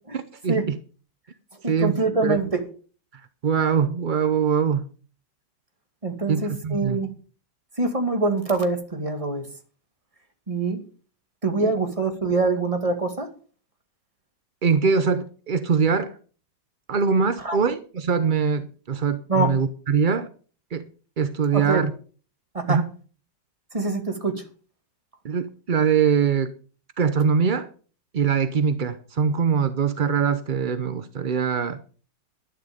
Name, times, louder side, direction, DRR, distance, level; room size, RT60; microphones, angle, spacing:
voice 1, 0.4-0.8 1.7-2.4 3.4-4.9 6.3-7.0 11.6-11.7 14.6-16.1 16.9-20.3 20.7-20.9 21.2-21.9 22.7-22.9 25.2-26.5 27.0-27.7 28.1-31.8, right 6 dB, 55° right, 0.5 m, -22 dB
voice 2, 1.6-2.6 6.0-7.1 7.8-9.5 10.5-10.8 11.4-13.3 17.4-17.6 19.3-19.5 21.5-21.8 22.5-22.8 23.7-24.4, right 3 dB, 20° right, 2.2 m, -24 dB
12.0 x 11.5 x 5.1 m
omnidirectional pair, 1.9 m